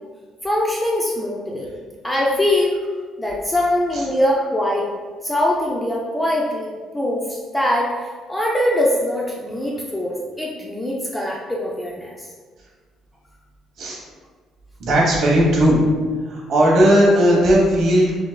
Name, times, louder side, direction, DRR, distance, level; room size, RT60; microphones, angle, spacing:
voice 1, 0.4-1.7 2.0-2.8 3.2-4.8 5.2-6.7 6.9-12.3, left 1 dB, 5° left, -3 dB, 0.4 m, -22 dB
voice 2, 14.8-15.8 16.2-18.3, equal, 45° right, -3 dB, 1.1 m, -16 dB
5.2 x 3.6 x 2.2 m, 1.5 s
cardioid pair, 175°, 0 cm